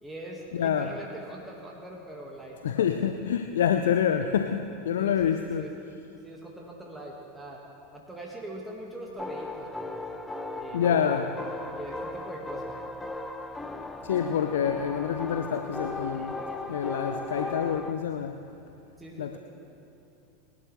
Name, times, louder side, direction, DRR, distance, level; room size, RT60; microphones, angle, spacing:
voice 1, 0.0-3.0 5.0-5.7 6.2-7.6 7.9-10.0 10.5-10.9 11.7-12.7 16.1-16.6 19.0-19.4, right 1 dB, 10° right, -2 dB, 1.8 m, -43 dB
voice 2, 0.5-0.9 2.6-5.6 10.7-11.4 14.0-16.4 16.7-18.4 19.2-19.4, left 8 dB, 65° left, 7 dB, 0.6 m, -27 dB
sound 1, 9.2-17.9, left 2 dB, 10° left, 0.8 m, -37 dB
22.5 x 11.5 x 3.3 m, 2.7 s
figure-of-eight pair, 85°, 0 cm